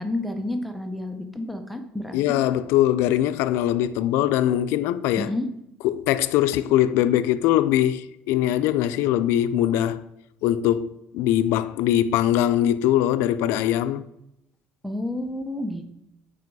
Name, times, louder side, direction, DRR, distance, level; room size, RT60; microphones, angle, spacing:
voice 1, 0.0-2.4 5.2-5.5 14.8-15.9, left 1 dB, ahead, 0.7 m, -30 dB
voice 2, 2.1-5.3 5.8-10.0 10.4-14.0, left 12 dB, 85° left, 0.4 m, -22 dB
8.3 x 5.0 x 4.6 m
cardioid pair, 150°, 4 cm